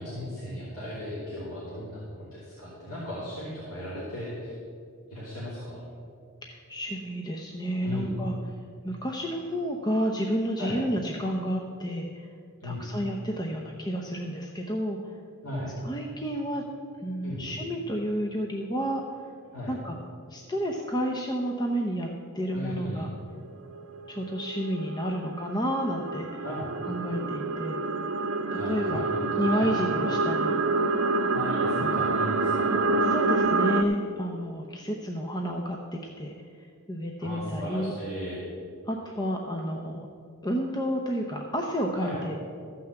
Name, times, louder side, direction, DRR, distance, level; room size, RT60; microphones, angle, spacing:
voice 1, 0.0-4.5 5.1-5.8 7.8-8.1 10.6-10.8 12.6-12.8 15.4-15.7 17.2-17.5 19.5-19.8 22.5-23.1 26.4-26.7 28.5-29.7 31.3-32.7 37.2-38.4 42.0-42.2, equal, 70° left, -9 dB, 3.0 m, -36 dB
voice 2, 6.4-8.4 8.8-12.3 12.6-15.0 15.8-16.6 17.0-19.0 19.7-20.0 20.3-22.1 22.3-23.1 24.1-26.4 26.9-27.8 28.7-29.1 29.4-30.6 31.8-32.0 33.0-36.3 36.9-37.9 38.9-40.1 40.4-42.4, equal, 20° left, 1 dB, 0.7 m, -30 dB
sound 1, 22.5-22.8 23.7-33.8, right 3 dB, 65° right, 0.7 m, -27 dB
14.0 x 5.9 x 7.7 m, 2.3 s
head